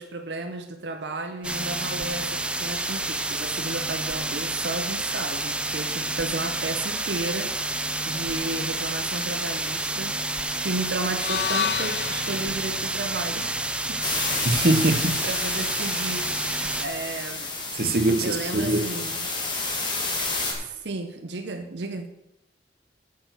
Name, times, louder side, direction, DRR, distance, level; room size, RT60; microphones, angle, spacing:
voice 1, 0.0-7.8 8.0-10.2 10.6-14.0 14.8-17.5 18.2-19.3 20.6-22.1, right 3 dB, 80° right, 0.7 m, -33 dB
sound 1, 1.4-16.8, right 2 dB, 5° right, 0.5 m, -29 dB
sound 2, 11.1-15.3, left 8 dB, 65° left, 0.5 m, -33 dB
sound 3, 14.0-20.5, left 3 dB, 25° left, 2.2 m, -30 dB
voice 2, 14.4-15.2 17.8-18.8, right 2 dB, 55° right, 1.0 m, -22 dB
8.2 x 6.7 x 8.0 m
head